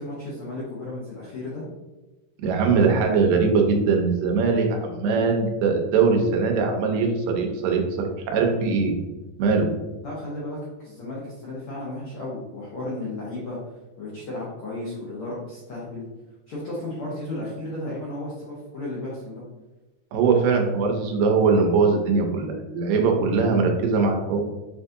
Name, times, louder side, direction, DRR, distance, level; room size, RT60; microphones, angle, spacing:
voice 1, 0.0-1.6 10.0-13.6 14.0-16.1 16.5-19.4, left 1 dB, 85° left, -6 dB, 1.2 m, -34 dB
voice 2, 2.4-9.0 9.4-9.7 20.1-24.4, right 4 dB, 90° right, 2 dB, 2.3 m, -21 dB
6.4 x 2.5 x 2.6 m, 1.1 s
omnidirectional pair, 3.7 m